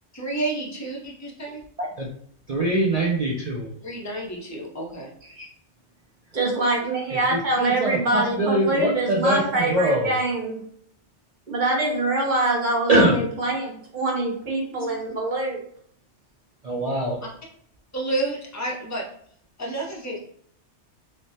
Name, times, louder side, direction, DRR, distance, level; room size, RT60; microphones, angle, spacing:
voice 1, 0.1-1.6 3.8-5.1 14.8-14.9 17.9-19.0 19.6-20.2, right 2 dB, 25° left, -2 dB, 0.4 m, -30 dB
voice 2, 2.5-3.7 7.1-10.1 12.9-13.2 16.6-17.2, right 1 dB, 65° right, -3 dB, 0.3 m, -23 dB
voice 3, 6.3-10.6 11.5-15.6, right 2 dB, 45° right, -2 dB, 0.8 m, -24 dB
3.1 x 2.1 x 2.7 m, 0.62 s
omnidirectional pair, 1.2 m